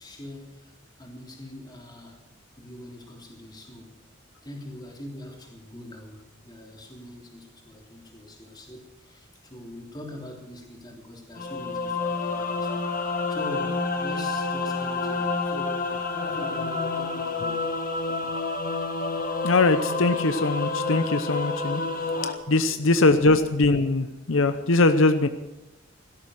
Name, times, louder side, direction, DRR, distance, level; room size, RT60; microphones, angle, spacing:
voice 1, 0.0-2.2 2.6-4.0 4.4-15.9 16.2-17.7 22.6-23.4, left 1 dB, 20° left, 0 dB, 3.3 m, -43 dB
sound 1, 11.4-22.3, left 3 dB, 45° left, 1.6 m, -29 dB
voice 2, 19.4-21.8 22.2-25.3, left 2 dB, 80° left, 10 dB, 0.8 m, -21 dB
17.0 x 13.0 x 6.4 m, 1.0 s
head